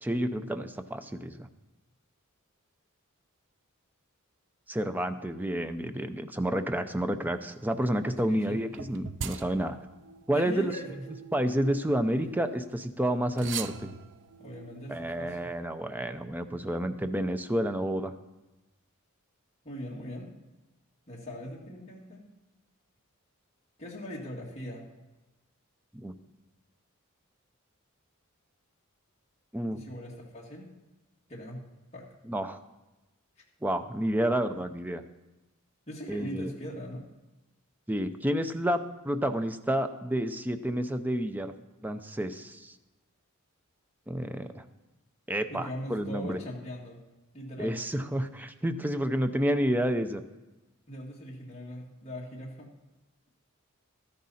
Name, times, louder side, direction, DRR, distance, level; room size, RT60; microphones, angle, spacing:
voice 1, 0.0-1.5 4.7-9.8 10.3-10.7 11.3-13.9 14.9-18.1 25.9-26.1 29.5-29.8 32.2-32.6 33.6-35.0 36.1-36.5 37.9-41.5 41.8-42.7 44.1-44.6 45.3-46.4 47.6-50.2, right 1 dB, 10° right, 9 dB, 0.5 m, -30 dB
voice 2, 8.3-8.6 10.3-11.2 14.4-15.4 19.6-20.3 21.1-22.2 23.8-24.9 29.7-30.7 31.3-31.6 31.9-32.0 35.9-37.0 45.5-47.0 47.3-47.8 50.9-52.7, equal, 30° left, -3 dB, 2.1 m, -40 dB
sound 1, 8.7-12.5 13.3-15.6, right 7 dB, 55° right, 0.5 m, -43 dB
13.5 x 10.5 x 4.2 m, 1.1 s
head